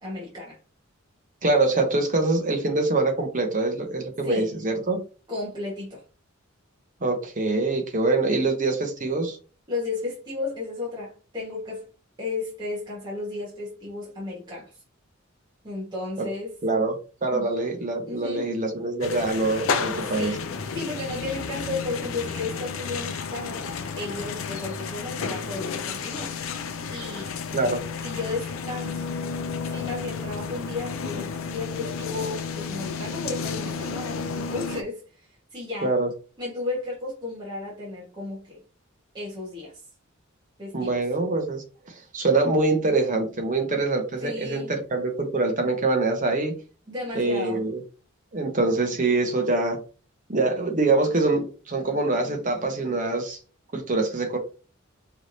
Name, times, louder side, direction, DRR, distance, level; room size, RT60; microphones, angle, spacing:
voice 1, 0.0-0.6 4.2-4.5 5.3-6.0 9.7-11.8 12.2-14.8 15.6-16.9 17.3-17.5 18.1-18.5 20.1-20.5 20.7-23.7 23.9-26.4 26.9-27.3 28.0-29.0 29.6-35.9 36.4-38.6 39.1-39.8 40.6-41.0 44.2-44.7 46.9-47.6, left 3 dB, 20° right, -6 dB, 1.3 m, -34 dB
voice 2, 1.4-5.0 7.0-9.4 16.2-16.3 16.6-16.9 17.2-20.3 27.5-27.8 35.8-36.1 40.7-46.6 47.1-47.8 48.3-49.8 50.3-53.4 53.7-54.4, right 3 dB, 40° right, 4 dB, 0.9 m, -24 dB
sound 1, 19.0-34.8, left 5 dB, 85° left, 0.6 m, -32 dB
4.7 x 3.2 x 2.7 m, 0.36 s
head